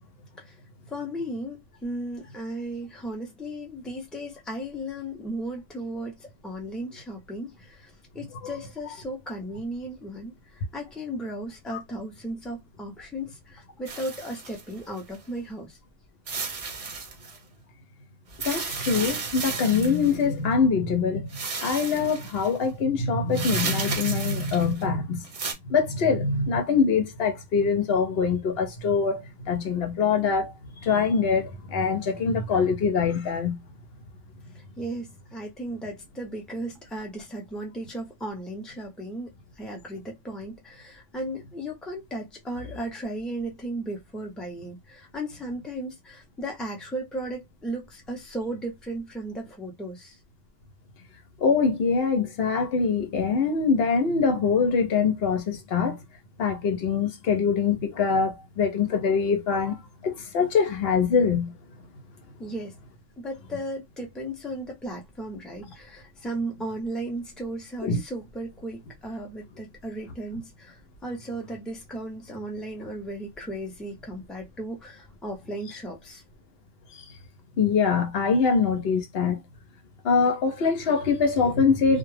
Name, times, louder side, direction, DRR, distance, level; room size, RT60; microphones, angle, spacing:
voice 1, 0.9-10.3 10.7-15.8 34.8-39.3 39.6-50.2 62.4-62.7 63.2-76.2, right 1 dB, ahead, 0.5 m, -35 dB
sound 1, 13.9-15.2 16.3-17.4 18.3-20.2 21.3-22.5 23.3-24.8 25.2-25.5, right 4 dB, 45° right, 0.5 m, -33 dB
voice 2, 18.4-21.3 21.6-25.2 25.7-30.5 30.8-33.6 51.4-56.0 56.4-59.8 60.0-61.5 67.8-68.0 77.6-79.4 80.0-82.0, left 5 dB, 70° left, 0.8 m, -23 dB
2.2 x 2.0 x 3.1 m
omnidirectional pair, 1.1 m